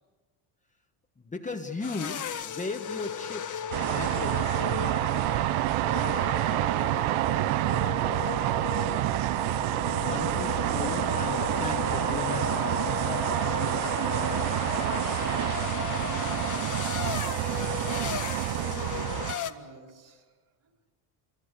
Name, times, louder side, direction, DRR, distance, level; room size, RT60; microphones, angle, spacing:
voice 1, 1.2-3.7 3.9-4.6 9.9-12.9, left 3 dB, 15° left, 1.4 m, -37 dB
sound 1, 1.8-19.5, left 8 dB, 40° left, 1.6 m, -35 dB
sound 2, 3.7-19.3, right 17 dB, 75° right, 0.8 m, -28 dB
voice 2, 7.0-8.5 17.3-20.3 20.6-20.7, right 4 dB, 40° right, 5.0 m, -49 dB
27.0 x 23.5 x 8.3 m
cardioid pair, 110°, 49 cm